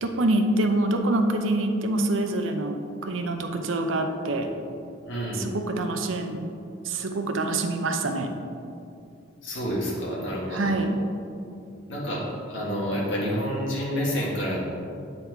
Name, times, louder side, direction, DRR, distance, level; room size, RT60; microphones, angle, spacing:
voice 1, 0.0-4.5 5.3-6.4 6.8-8.3 10.5-11.0, right 2 dB, 90° right, 5 dB, 0.6 m, -25 dB
voice 2, 5.0-5.5 9.4-10.7 11.9-14.6, equal, 75° left, -5 dB, 1.4 m, -29 dB
8.6 x 4.1 x 4.6 m, 2.5 s
head